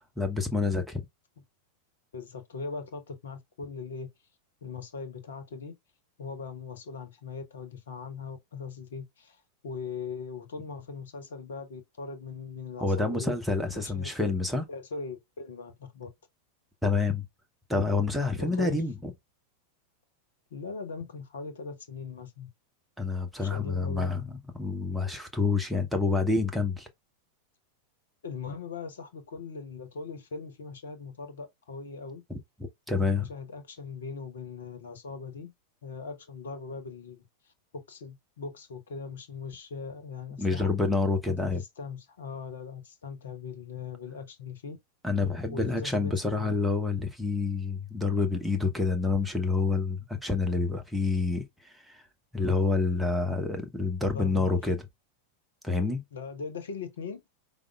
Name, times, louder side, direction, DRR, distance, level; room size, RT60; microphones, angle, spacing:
voice 1, 0.2-1.0 12.8-14.7 16.8-17.3 17.7-19.1 23.0-26.9 32.3-32.4 32.9-33.3 40.4-41.6 45.0-52.0 52.3-54.8 55.6-56.0, left 3 dB, ahead, 0.9 m, -28 dB
voice 2, 2.1-4.1 4.6-5.7 6.2-13.3 13.7-14.1 14.7-16.1 18.3-18.8 20.5-22.5 23.4-24.1 28.2-32.2 32.9-35.5 35.8-37.5 37.9-40.7 41.3-44.8 45.5-46.6 54.1-54.6 56.1-57.2, left 5 dB, 65° left, 1.0 m, -40 dB
5.1 x 2.1 x 3.4 m
figure-of-eight pair, 90°, 0 cm